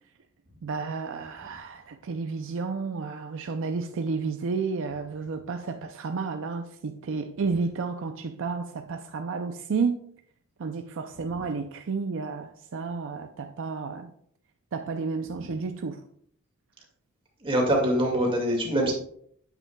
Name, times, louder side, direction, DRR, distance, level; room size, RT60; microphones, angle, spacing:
voice 1, 0.6-10.0 10.6-14.1 14.7-16.0, right 4 dB, 65° right, 0.5 m, -31 dB
voice 2, 17.4-18.9, right 1 dB, 25° right, 2.1 m, -24 dB
8.8 x 8.1 x 2.3 m
head